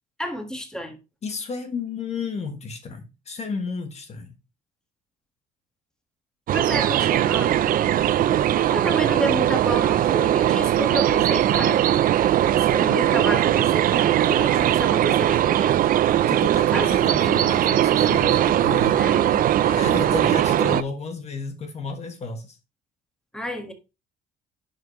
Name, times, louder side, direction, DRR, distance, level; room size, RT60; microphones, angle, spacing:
voice 1, 0.2-1.0 6.5-7.7 8.7-11.8 12.6-15.8 16.7-16.9 19.0-19.5 23.3-23.7, equal, 5° left, 1.7 m, -30 dB
voice 2, 1.2-4.3 16.3-19.3 19.6-22.6, left 4 dB, 40° left, 1.4 m, -32 dB
sound 1, 6.5-20.8, right 11 dB, 55° right, 0.6 m, -20 dB
10.5 x 5.6 x 3.1 m
cardioid pair, 110°, 17 cm